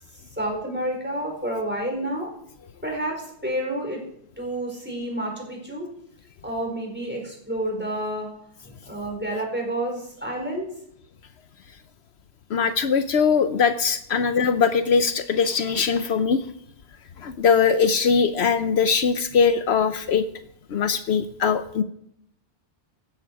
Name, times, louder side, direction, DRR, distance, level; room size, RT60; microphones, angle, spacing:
voice 1, 0.4-2.3 2.8-4.0 4.4-5.9 6.4-8.3 8.6-10.7 14.2-14.3, right 1 dB, 10° right, 0 dB, 4.6 m, -29 dB
voice 2, 12.5-16.4 17.2-20.2 20.7-21.8, left 6 dB, 75° left, 11 dB, 1.0 m, -21 dB
15.5 x 12.5 x 4.8 m, 0.73 s
omnidirectional pair, 1.1 m